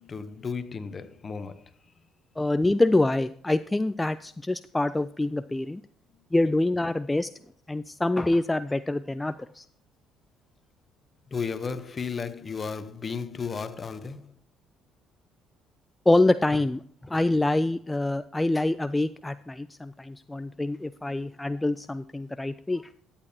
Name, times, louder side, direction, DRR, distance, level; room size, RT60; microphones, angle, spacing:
voice 1, 0.0-1.6 11.3-14.3, left 5 dB, 40° left, 0.8 m, -34 dB
voice 2, 2.4-5.8 6.3-7.3 7.7-9.7 16.1-22.8, left 2 dB, 15° left, 0.3 m, -25 dB
13.0 x 8.7 x 2.8 m
supercardioid pair, 70°, 0 cm